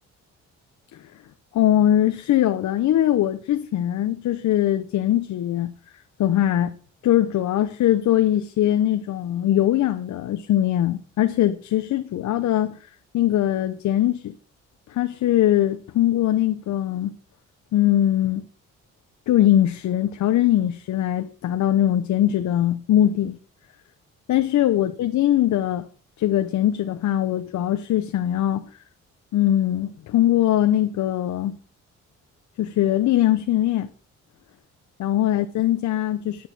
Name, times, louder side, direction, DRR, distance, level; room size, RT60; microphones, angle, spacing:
voice 1, 1.5-5.7 6.2-6.7 7.0-12.8 13.1-14.3 14.9-17.1 17.7-18.4 19.3-23.4 24.3-25.8 26.2-28.6 29.3-31.6 32.6-33.9 35.0-36.5, left 12 dB, 70° left, 0.9 m, -21 dB
9.5 x 9.2 x 6.1 m
cardioid pair, 90°, 30 cm